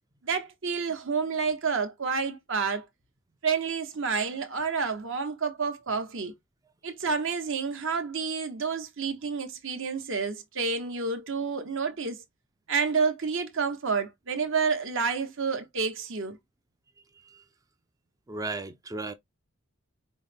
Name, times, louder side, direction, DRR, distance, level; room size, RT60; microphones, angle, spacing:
voice 1, 0.2-2.8 3.4-6.3 6.8-12.2 12.7-16.4, right 5 dB, 60° right, 1.0 m, -29 dB
voice 2, 18.3-19.1, right 3 dB, 15° right, 0.3 m, -34 dB
5.3 x 2.0 x 3.3 m
head